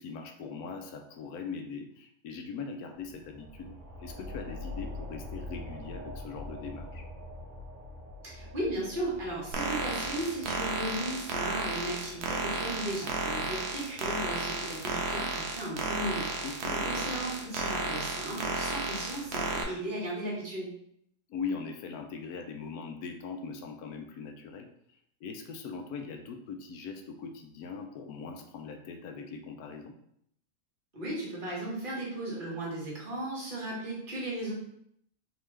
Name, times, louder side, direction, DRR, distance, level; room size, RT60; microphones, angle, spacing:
voice 1, 0.0-7.1 16.4-17.3 21.3-24.7 25.2-30.0, left 5 dB, 75° left, 5 dB, 1.0 m, -41 dB
sound 1, 3.0-14.2, left 2 dB, 50° right, 1.1 m, -45 dB
voice 2, 8.2-20.7 30.9-34.5, right 1 dB, 35° right, -5 dB, 1.3 m, -36 dB
sound 2, 9.5-19.6, right 3 dB, 75° right, 1.1 m, -33 dB
3.7 x 2.9 x 3.1 m, 0.71 s
omnidirectional pair, 1.7 m